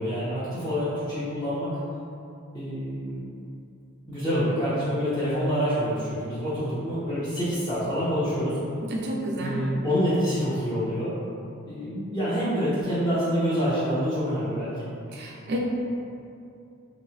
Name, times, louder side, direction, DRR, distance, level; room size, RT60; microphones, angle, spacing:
voice 1, 0.0-1.7 2.5-3.3 4.1-8.6 9.4-11.1 11.6-14.9, equal, 20° left, -12 dB, 0.6 m, -27 dB
voice 2, 8.9-9.6 15.1-15.6, equal, 50° right, -2 dB, 0.4 m, -30 dB
3.5 x 3.1 x 2.7 m, 2.5 s
head